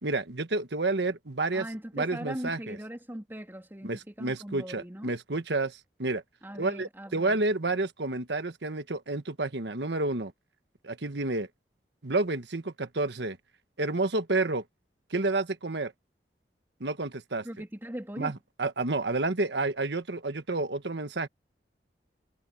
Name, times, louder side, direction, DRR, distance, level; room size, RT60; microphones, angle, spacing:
voice 1, 0.0-1.6 1.9-2.8 3.8-6.2 6.6-10.3 10.8-11.5 12.0-13.4 13.8-14.6 15.1-15.9 16.8-17.5 18.2-21.3, right 2 dB, 75° right, 1.4 m, -30 dB
voice 2, 1.5-5.1 6.4-7.4 17.4-18.3, equal, 15° right, 3.2 m, -40 dB
head